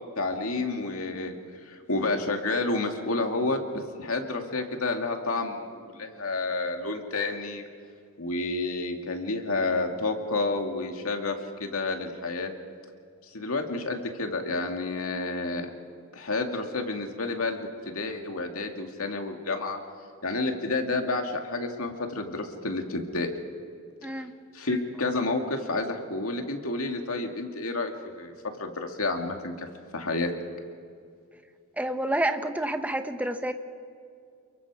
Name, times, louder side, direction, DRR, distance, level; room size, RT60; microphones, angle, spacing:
voice 1, 0.2-1.3 1.6-7.6 8.2-12.5 13.3-15.7 16.1-19.8 20.2-23.3 24.1-24.2 24.5-28.3 28.6-29.7 29.9-30.3, left 3 dB, 90° left, 3 dB, 2.3 m, -30 dB
voice 2, 24.0-24.3 31.8-33.5, right 1 dB, 5° right, 7 dB, 1.1 m, -28 dB
28.5 x 23.0 x 4.9 m, 2.3 s
head